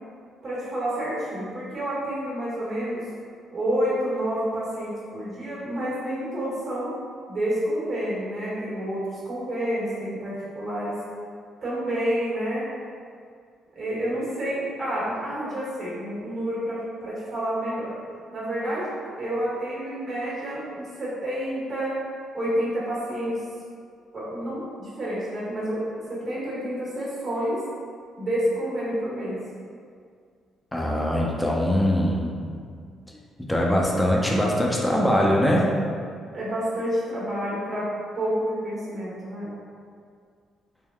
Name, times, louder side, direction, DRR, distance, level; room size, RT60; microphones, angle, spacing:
voice 1, 0.4-3.0 3.5-6.9 7.3-11.0 11.6-12.7 13.7-17.9 18.3-18.9 19.2-22.0 22.3-23.3 24.1-25.8 26.1-27.6 28.2-29.4 36.3-37.9 38.1-39.5, equal, 50° right, -9 dB, 1.4 m, -29 dB
voice 2, 30.7-32.5 33.5-35.7, equal, 10° left, -3 dB, 0.5 m, -22 dB
3.4 x 2.2 x 2.3 m, 2.2 s
supercardioid pair, 75°, 0 cm